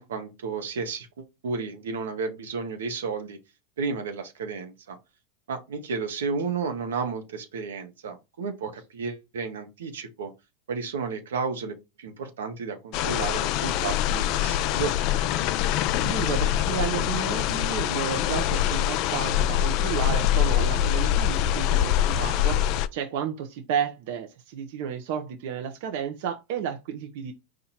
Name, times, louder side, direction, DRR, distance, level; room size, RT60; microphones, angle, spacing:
voice 1, 0.0-3.4 3.8-5.0 5.5-10.3 10.7-15.2, right 5 dB, 85° right, 0.9 m, -32 dB
sound 1, 12.9-22.9, left 11 dB, 50° left, 0.4 m, -24 dB
voice 2, 16.0-22.6 22.9-27.3, right 8 dB, 65° right, 0.7 m, -32 dB
4.4 x 2.5 x 4.2 m
hypercardioid pair, 115°, 0 cm